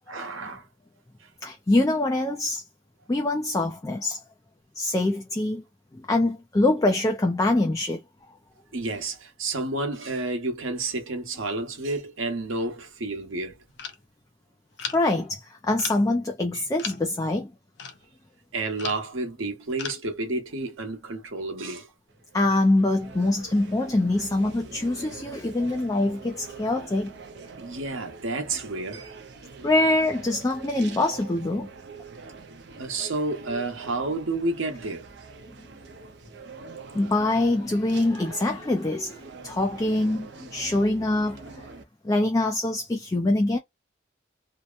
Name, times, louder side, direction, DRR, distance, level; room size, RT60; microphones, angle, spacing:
voice 1, 0.1-0.7 8.7-13.6 16.5-16.6 18.5-21.9 27.6-29.1 32.8-35.1, right 2 dB, 80° right, 1.0 m, -30 dB
voice 2, 1.4-2.6 3.1-4.2 4.7-5.6 5.9-8.0 14.9-17.5 22.3-27.1 29.6-31.7 36.9-41.7 42.0-43.6, left 2 dB, 15° left, 0.3 m, -24 dB
sound 1, 13.8-14.0 14.8-15.1 15.8-16.1 16.6-17.0 17.8-18.1 18.8-19.1 19.8-20.0, left 6 dB, 60° left, 0.6 m, -36 dB
sound 2, 22.1-41.8, right 4 dB, 55° right, 0.5 m, -44 dB
2.8 x 2.1 x 2.4 m
head